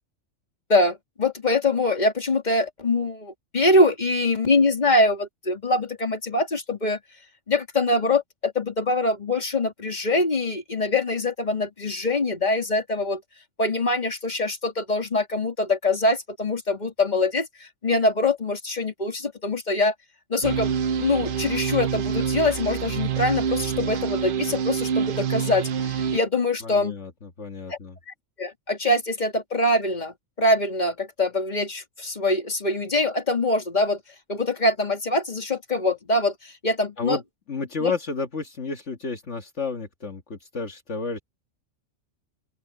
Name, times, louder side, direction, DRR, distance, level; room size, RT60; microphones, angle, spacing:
voice 1, 0.7-7.0 7.5-13.2 13.6-19.9 20.3-20.7 21.0-27.0 27.7-27.8 28.1-34.0 34.3-37.2 37.8-37.9, left 2 dB, 35° left, 2.6 m, -24 dB
sound 1, 20.4-26.2, right 7 dB, 55° right, 0.6 m, -27 dB
voice 2, 26.6-28.0 37.0-37.2 37.5-41.2, left 4 dB, 65° left, 2.0 m, -31 dB
open air
omnidirectional pair, 1.3 m